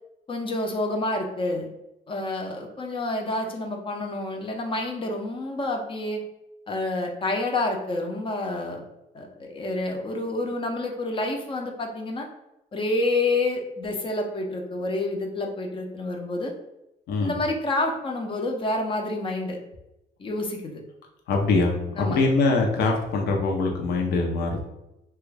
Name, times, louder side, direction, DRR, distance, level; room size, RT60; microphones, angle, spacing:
voice 1, 0.3-1.7 2.1-6.2 6.7-8.8 9.1-12.3 12.7-16.5 17.2-19.6 20.2-20.7 22.0-22.2, left 2 dB, 30° left, 2 dB, 0.6 m, -28 dB
voice 2, 17.1-17.4 21.3-24.6, left 3 dB, 70° left, 1 dB, 0.7 m, -23 dB
3.0 x 2.3 x 3.3 m, 0.90 s
cardioid pair, 110°, 17 cm